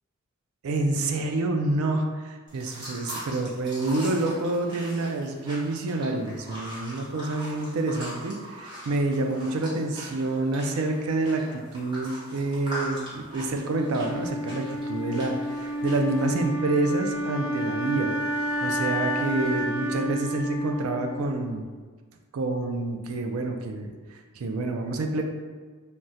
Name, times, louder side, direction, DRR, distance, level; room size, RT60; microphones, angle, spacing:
voice 1, 0.6-21.6 22.3-23.9 24.4-25.2, right 2 dB, 85° right, 4 dB, 0.4 m, -28 dB
sound 1, 2.5-16.5, equal, 20° right, 0.8 m, -41 dB
Wind instrument woodwind instrument, 13.7-21.7, equal, 75° left, 0.5 m, -30 dB
3.5 x 2.0 x 2.7 m, 1.4 s
head